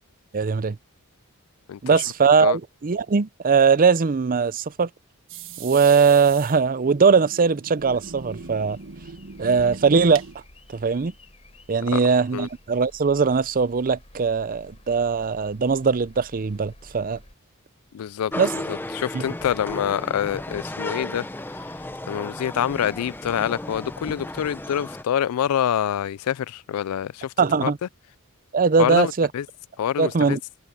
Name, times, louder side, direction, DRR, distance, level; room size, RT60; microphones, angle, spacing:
voice 1, 0.3-0.8 1.8-4.9 5.6-8.8 9.4-10.2 10.7-11.1 11.7-17.2 18.4-18.5 19.1-19.2 27.4-27.8 28.5-29.3 30.0-30.4, right 5 dB, 40° right, 0.5 m, -20 dB
sound 1, 5.3-10.3, right 5 dB, 60° right, 1.5 m, -40 dB
sound 2, 7.8-17.3, left 1 dB, 30° left, 4.7 m, -51 dB
voice 2, 17.9-21.3 22.1-27.3 27.6-27.7 28.8-29.5 29.8-30.4, left 9 dB, 80° left, 0.3 m, -26 dB
sound 3, 18.3-25.0, left 1 dB, 10° left, 0.9 m, -34 dB
head